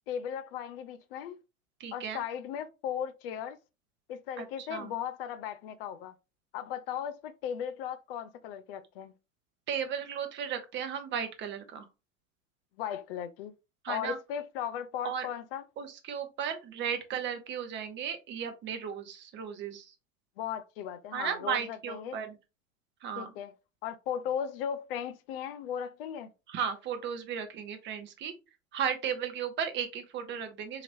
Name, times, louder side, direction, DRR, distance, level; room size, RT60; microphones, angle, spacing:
voice 1, 0.1-1.4 1.9-3.6 4.1-6.1 6.5-9.1 12.8-13.5 13.9-15.6 20.4-22.2 23.2-23.5 23.8-26.3, left 9 dB, 45° left, 0.6 m, -37 dB
voice 2, 1.8-2.2 4.4-4.9 9.7-11.9 13.8-14.2 15.0-15.3 15.8-19.9 21.1-22.4 23.0-23.3 26.5-28.3 28.7-30.8, right 7 dB, 30° right, 0.9 m, -35 dB
4.8 x 2.9 x 2.7 m
figure-of-eight pair, 80°, 40 cm